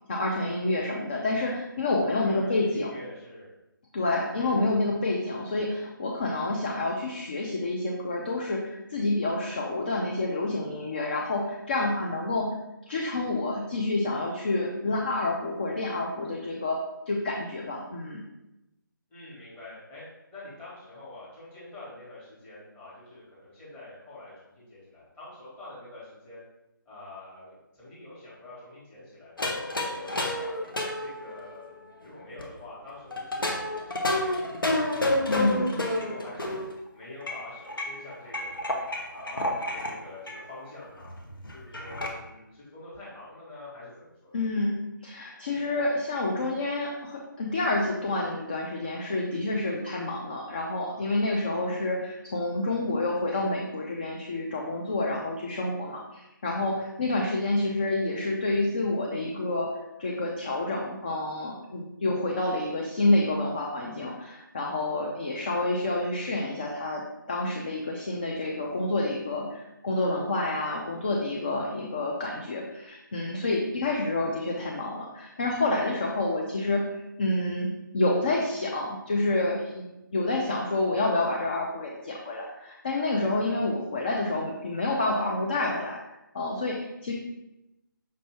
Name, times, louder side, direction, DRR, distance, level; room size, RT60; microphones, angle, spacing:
voice 1, 0.1-2.9 3.9-12.6 12.9-16.8 17.1-18.2 35.3-35.7 44.3-59.7 60.0-79.9 80.1-87.1, left 2 dB, 25° left, -1 dB, 0.4 m, -28 dB
voice 2, 2.2-3.5 4.4-4.6 19.1-20.0 20.3-26.4 26.8-30.5 31.0-34.6 35.0-36.6 36.9-38.7 39.1-41.1 41.5-44.4, left 2 dB, 10° left, -9 dB, 1.2 m, -46 dB
sound 1, 29.4-32.4 33.1-36.7 37.2-40.0 40.3-40.4 40.7-40.8 41.0-42.1, left 1 dB, 80° left, 0.8 m, -30 dB
5.4 x 2.6 x 3.2 m, 0.93 s
figure-of-eight pair, 155°, 11 cm